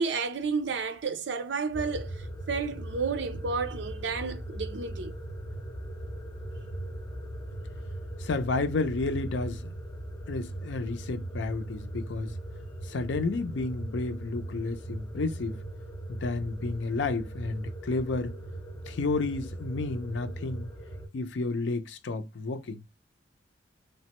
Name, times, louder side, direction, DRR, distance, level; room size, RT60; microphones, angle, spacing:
voice 1, 0.0-5.1, right 4 dB, 65° right, 0.5 m, -31 dB
sound 1, 1.7-21.1, right 1 dB, 20° left, 0.8 m, -39 dB
voice 2, 8.2-9.7 10.3-12.4 12.8-15.6 16.1-18.4 18.9-20.7 21.1-22.8, left 3 dB, 70° left, 0.5 m, -31 dB
3.3 x 2.1 x 2.9 m
head